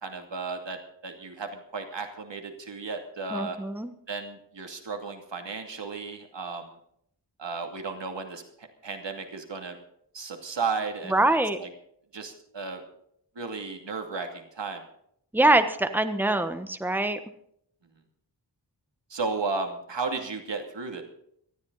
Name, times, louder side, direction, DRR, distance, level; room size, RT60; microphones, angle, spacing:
voice 1, 0.0-3.6 4.1-6.7 7.4-9.8 10.1-11.1 11.6-11.7 12.1-12.8 13.4-14.8 19.1-21.0, right 4 dB, 90° right, 4 dB, 2.7 m, -34 dB
voice 2, 3.3-3.9 11.1-11.6 15.3-17.2, right 2 dB, 5° right, 9 dB, 1.2 m, -24 dB
19.0 x 14.0 x 4.1 m, 0.70 s
wide cardioid pair, 80°, 42 cm